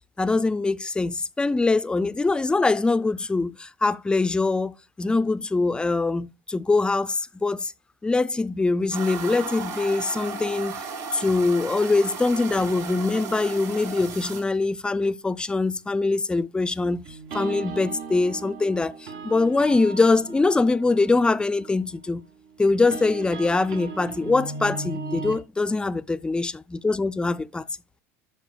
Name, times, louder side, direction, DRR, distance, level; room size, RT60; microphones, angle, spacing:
voice 1, 0.2-7.7 8.0-10.8 11.1-17.1 17.3-22.2 22.6-26.5 26.8-27.6, left 3 dB, 10° left, 0.4 m, -23 dB
sound 1, 8.9-14.4, right 5 dB, 55° right, 4.6 m, -35 dB
sound 2, 17.1-25.4, right 4 dB, 70° right, 1.5 m, -37 dB
12.5 x 5.4 x 2.3 m
supercardioid pair, 105°, 8 cm